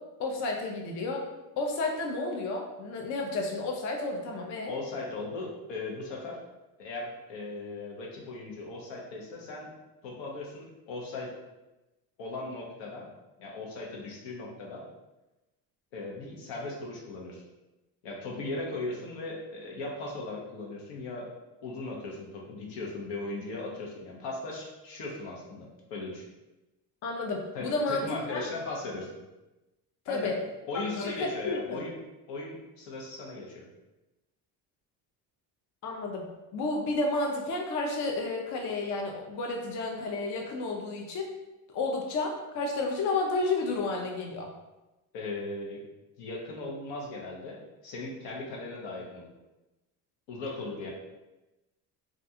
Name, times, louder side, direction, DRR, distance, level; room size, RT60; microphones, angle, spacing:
voice 1, 0.2-1.2 1.6-4.7 27.0-28.5 30.1-30.4 31.0-31.8 35.8-41.3 41.7-44.5, left 3 dB, 45° left, 1 dB, 0.4 m, -31 dB
voice 2, 4.7-6.4 6.8-9.7 10.0-11.3 12.2-13.1 13.4-14.8 15.9-17.4 18.0-21.3 21.6-26.2 27.5-29.1 30.1-32.0 32.3-33.6 45.1-45.8 46.2-49.3 50.3-50.9, left 2 dB, 75° left, -2 dB, 0.8 m, -38 dB
2.5 x 2.2 x 2.7 m, 1.0 s
supercardioid pair, 85°, 45 cm